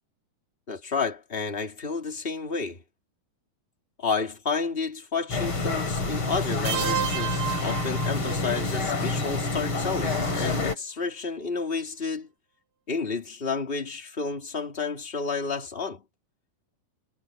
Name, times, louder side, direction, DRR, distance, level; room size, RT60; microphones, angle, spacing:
voice 1, 0.7-2.8 4.0-12.3 12.9-16.0, left 4 dB, 15° left, 2.8 m, -31 dB
sound 1, 5.3-10.7, left 3 dB, 35° left, 5.0 m, -28 dB
sound 2, 6.6-8.6, right 9 dB, 75° right, 1.6 m, -31 dB
omnidirectional pair, 4.1 m